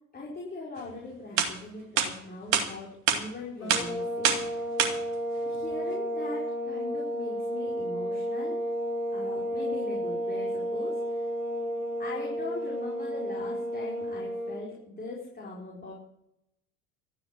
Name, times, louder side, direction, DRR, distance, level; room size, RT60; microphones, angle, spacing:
voice 1, 0.1-4.6 5.4-8.7 9.1-11.3 12.0-15.9, left 3 dB, 20° left, -4 dB, 4.9 m, -41 dB
sound 1, 0.9-1.0 1.4-1.5 2.0-2.1 2.5-2.7 3.1-3.2 3.7-3.8 4.2-4.4 4.8-4.9, right 8 dB, 60° right, 2.4 m, -24 dB
sound 2, 3.6-14.6, equal, 85° left, 5.0 m, -32 dB
13.5 x 9.4 x 7.8 m, 0.78 s
figure-of-eight pair, 70°, 43 cm